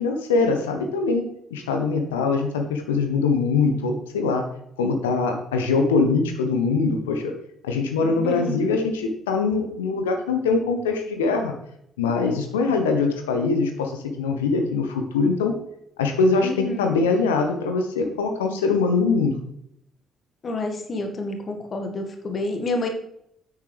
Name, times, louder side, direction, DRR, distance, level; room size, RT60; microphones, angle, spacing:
voice 1, 0.0-4.5 4.8-7.3 7.6-11.5 12.0-15.6 16.0-19.3, left 4 dB, 75° left, 5 dB, 1.1 m, -23 dB
voice 2, 8.2-8.6 16.4-17.0 20.4-22.9, left 2 dB, 40° left, 4 dB, 1.8 m, -29 dB
10.5 x 8.7 x 3.4 m, 0.74 s
figure-of-eight pair, 45°, 0 cm